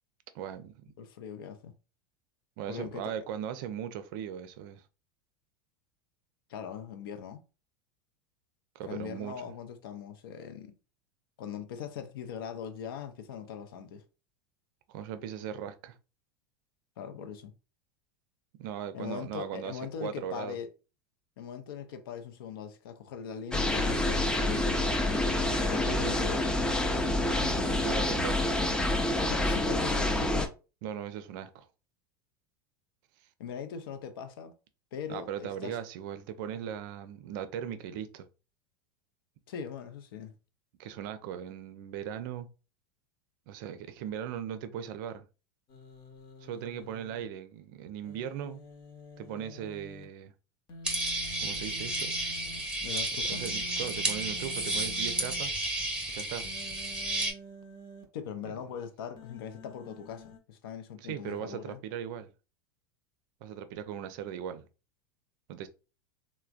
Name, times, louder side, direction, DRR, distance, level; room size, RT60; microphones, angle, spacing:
voice 1, 0.3-0.9 2.6-4.8 8.8-9.4 14.9-16.0 18.6-20.6 25.3-26.3 27.8-28.5 30.8-31.7 35.1-38.3 40.8-42.5 43.5-45.2 46.4-48.6 49.2-50.3 51.4-52.1 53.2-55.5 56.1-56.5 58.4-58.6 60.9-62.3 63.4-64.7 65.5-65.7, right 9 dB, 60° right, 0.4 m, -38 dB
voice 2, 1.0-1.7 2.7-3.1 6.5-7.4 8.9-10.7 11.4-14.0 17.0-17.5 18.9-20.7 21.4-25.0 25.7-26.4 27.3-27.8 29.3-30.5 33.4-34.5 34.9-35.8 39.5-40.3 52.8-53.4 58.1-61.8, left 8 dB, 70° left, 0.5 m, -40 dB
sound 1, 23.5-30.5, left 1 dB, 5° left, 0.4 m, -27 dB
Human voice, 45.7-47.2 48.0-50.0 50.7-52.6 53.3-55.4 56.4-58.0 59.2-60.4, left 1 dB, 40° left, 0.8 m, -48 dB
sound 2, 50.8-57.3, right 2 dB, 10° right, 0.9 m, -32 dB
3.2 x 2.1 x 2.4 m
hypercardioid pair, 85°, 12 cm